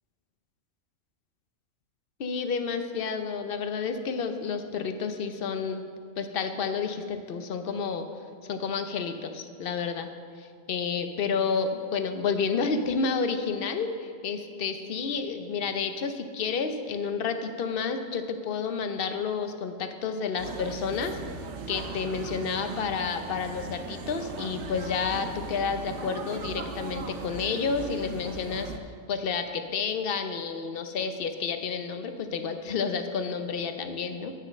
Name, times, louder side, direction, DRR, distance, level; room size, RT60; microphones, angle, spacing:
voice 1, 2.2-5.9 6.2-8.1 8.4-10.1 10.4-21.2 21.7-28.7 29.1-34.3, left 5 dB, 55° left, 7 dB, 0.8 m, -30 dB
sound 1, 20.4-28.8, right 3 dB, 65° right, 0.9 m, -38 dB
9.6 x 6.4 x 6.3 m, 2.1 s
omnidirectional pair, 1.3 m